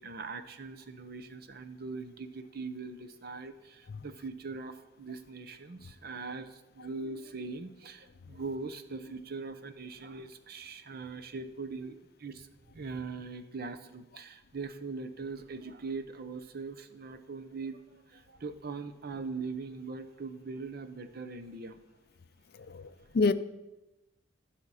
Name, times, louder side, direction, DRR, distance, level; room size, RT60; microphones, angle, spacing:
voice 1, 0.0-12.5 12.7-21.8, right 4 dB, 50° right, 0.7 m, -41 dB
voice 2, 22.6-23.3, left 3 dB, 55° left, 0.4 m, -28 dB
16.0 x 5.9 x 4.1 m
head